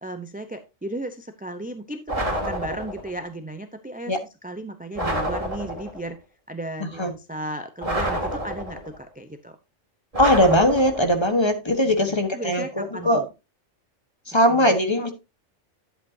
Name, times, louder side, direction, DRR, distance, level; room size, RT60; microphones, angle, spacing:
voice 1, 0.0-2.0 2.3-4.1 4.4-6.2 6.5-9.6 11.8-13.3 14.5-14.8, right 1 dB, 10° right, 8 dB, 0.6 m, -35 dB
sound 1, 2.1-3.2 5.0-6.1 7.8-9.0 10.1-11.3, right 1 dB, 30° right, 2.5 m, -28 dB
voice 2, 6.8-7.1 10.2-13.2 14.3-15.1, equal, 25° left, 6 dB, 1.3 m, -20 dB
11.0 x 7.9 x 2.7 m, 0.26 s
omnidirectional pair, 1.2 m